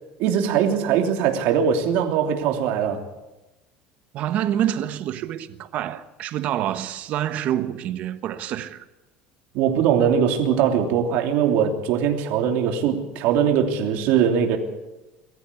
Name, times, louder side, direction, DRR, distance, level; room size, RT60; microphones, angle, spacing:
voice 1, 0.2-3.0 9.5-14.6, right 8 dB, 65° right, 3.0 m, -21 dB
voice 2, 4.1-8.8, right 11 dB, 45° right, 1.2 m, -27 dB
22.0 x 14.0 x 8.4 m
cardioid pair, 155°, 3 cm